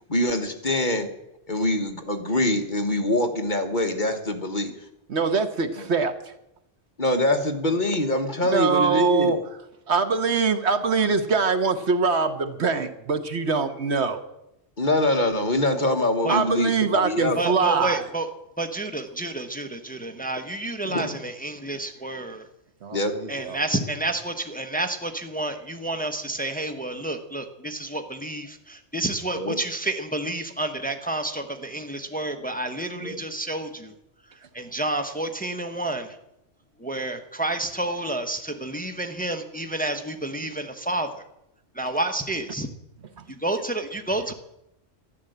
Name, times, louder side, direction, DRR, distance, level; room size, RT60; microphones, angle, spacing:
voice 1, 0.1-1.1 1.5-4.7 5.8-5.9 7.0-9.3 14.8-17.4 20.8-21.2 22.9-23.1 29.3-29.6 32.9-33.2, left 1 dB, 40° left, 6 dB, 1.5 m, -24 dB
voice 2, 5.1-6.3 8.4-9.4 9.9-14.2 16.3-18.0 22.8-23.6 43.2-43.3, right 5 dB, 65° right, 9 dB, 1.4 m, -23 dB
voice 3, 17.4-18.3 18.6-22.5 23.3-33.9 34.5-36.2 36.8-41.1 41.8-42.7 43.3-44.3, right 2 dB, 10° left, 6 dB, 1.0 m, -29 dB
12.5 x 11.5 x 7.9 m, 0.84 s
omnidirectional pair, 1.2 m